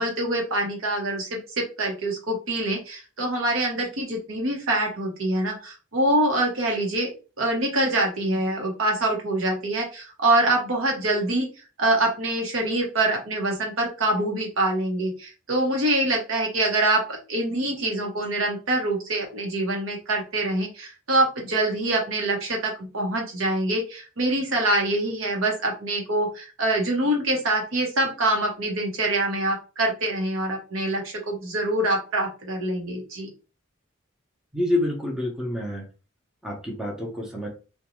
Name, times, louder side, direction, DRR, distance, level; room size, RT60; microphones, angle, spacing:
voice 1, 0.0-7.1 7.4-11.5 11.8-33.3, right 1 dB, 80° right, 1 dB, 0.9 m, -25 dB
voice 2, 34.5-35.8 36.4-37.5, left 1 dB, 5° right, -2 dB, 0.6 m, -27 dB
2.5 x 2.2 x 2.9 m, 0.34 s
head